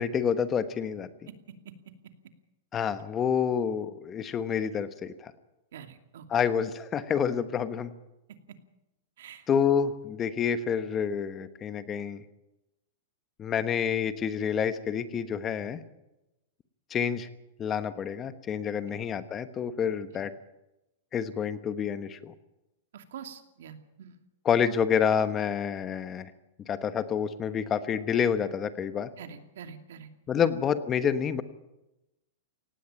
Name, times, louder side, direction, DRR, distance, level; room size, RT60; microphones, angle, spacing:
voice 1, 0.0-1.1 2.7-5.3 6.3-7.9 9.5-12.2 13.4-15.8 16.9-17.3 17.6-20.3 21.1-22.3 24.4-26.3 26.7-29.1 30.3-31.4, left 7 dB, 20° left, 12 dB, 1.2 m, -28 dB
voice 2, 5.7-6.3 9.2-9.5 18.9-19.0 20.1-20.3 22.9-24.1 29.2-30.1 30.4-30.5, right 7 dB, 75° right, 7 dB, 2.6 m, -45 dB
18.5 x 16.0 x 9.0 m, 0.94 s
supercardioid pair, 160°, 0 cm